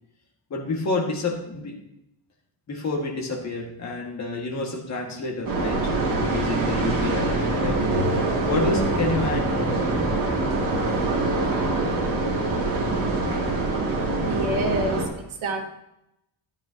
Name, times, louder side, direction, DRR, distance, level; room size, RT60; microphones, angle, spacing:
voice 1, 0.5-1.8 2.7-8.1 8.4-10.3, left 2 dB, 35° left, 0 dB, 2.0 m, -29 dB
sound 1, 5.4-15.1, right 2 dB, 45° right, 3.0 m, -24 dB
voice 2, 14.2-15.7, right 2 dB, 85° right, 0 dB, 2.0 m, -28 dB
13.0 x 9.3 x 2.9 m, 0.82 s
cardioid pair, 180°, 47 cm